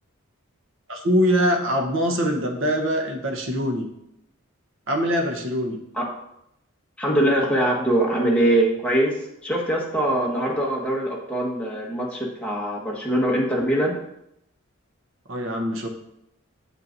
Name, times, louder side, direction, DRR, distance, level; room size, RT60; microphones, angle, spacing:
voice 1, 0.9-3.9 4.9-5.8 10.1-10.2 15.3-15.9, equal, 65° right, 2 dB, 1.0 m, -23 dB
voice 2, 7.0-14.0, right 1 dB, 5° left, -4 dB, 1.4 m, -23 dB
8.7 x 7.4 x 2.7 m, 0.80 s
head